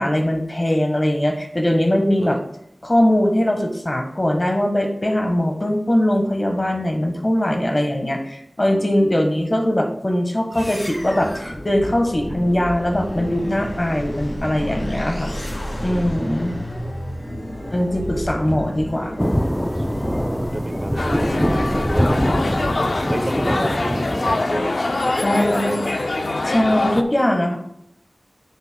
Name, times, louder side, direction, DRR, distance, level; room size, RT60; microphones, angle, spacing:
voice 1, 0.0-2.4 2.8-15.3 15.8-16.5 17.7-19.2 25.2-25.8 26.4-27.6, left 1 dB, 35° left, 4 dB, 1.4 m, -21 dB
voice 2, 8.7-9.4 15.8-16.7 19.9-22.2 23.0-26.0 26.7-26.8, right 1 dB, 35° right, 8 dB, 0.8 m, -31 dB
sound 1, 10.5-23.2, equal, 55° left, 2.9 m, -31 dB
sound 2, 19.2-24.4, equal, 5° left, 0.4 m, -23 dB
sound 3, 21.0-27.0, left 2 dB, 75° left, 0.5 m, -23 dB
9.3 x 7.6 x 2.2 m, 0.76 s
wide cardioid pair, 45°, 0 cm